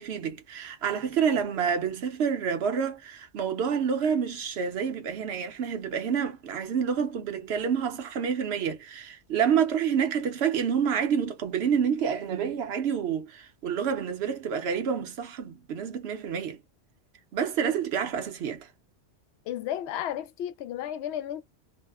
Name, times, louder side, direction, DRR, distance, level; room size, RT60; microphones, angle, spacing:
voice 1, 0.0-16.6 17.3-18.7, right 7 dB, 65° right, 0.9 m, -28 dB
voice 2, 19.5-21.4, left 11 dB, 70° left, 0.8 m, -33 dB
2.7 x 2.0 x 2.2 m
omnidirectional pair, 1.2 m